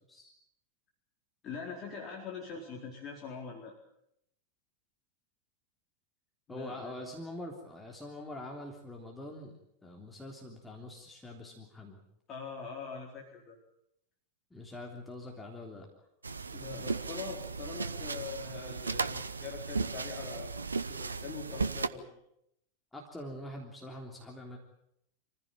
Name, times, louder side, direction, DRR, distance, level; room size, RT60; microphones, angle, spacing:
voice 1, 1.4-3.7 6.5-6.9 12.3-13.6 16.5-22.2, left 5 dB, 30° left, -1 dB, 4.3 m, -43 dB
voice 2, 6.5-12.0 14.5-16.1 22.9-24.6, left 1 dB, 5° left, 0 dB, 3.4 m, -44 dB
sound 1, 16.2-21.9, right 4 dB, 75° right, 0.8 m, -36 dB
26.5 x 15.5 x 9.0 m, 0.77 s
figure-of-eight pair, 90°, 0 cm